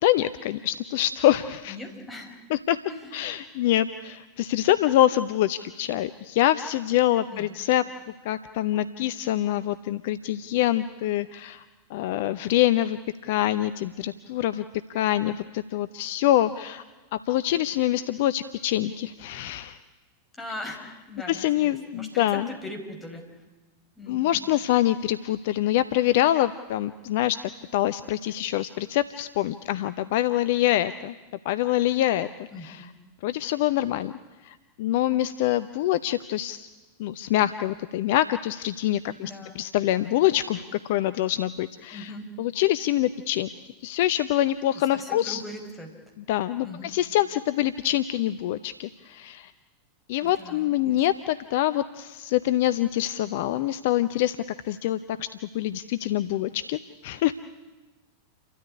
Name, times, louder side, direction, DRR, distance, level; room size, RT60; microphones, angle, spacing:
voice 1, 0.0-1.8 2.5-2.8 3.1-7.8 8.2-11.6 11.9-14.6 14.9-16.8 17.1-19.8 21.3-22.5 24.1-27.4 27.7-31.1 31.4-32.8 33.2-34.1 34.4-36.7 37.0-42.1 42.4-43.5 43.8-45.4 46.3-49.5 50.1-54.4 54.6-55.3 55.5-57.3, left 13 dB, 50° left, 13 dB, 0.7 m, -25 dB
voice 2, 1.7-2.3 2.9-3.3 7.3-7.6 20.3-23.2 24.0-24.4 32.5-32.9 39.2-39.6 39.9-40.1 41.9-42.3 44.7-45.9 46.6-46.9 50.2-51.0, left 1 dB, 10° left, 2 dB, 4.7 m, -40 dB
29.0 x 13.0 x 9.9 m, 1.2 s
figure-of-eight pair, 90°, 0 cm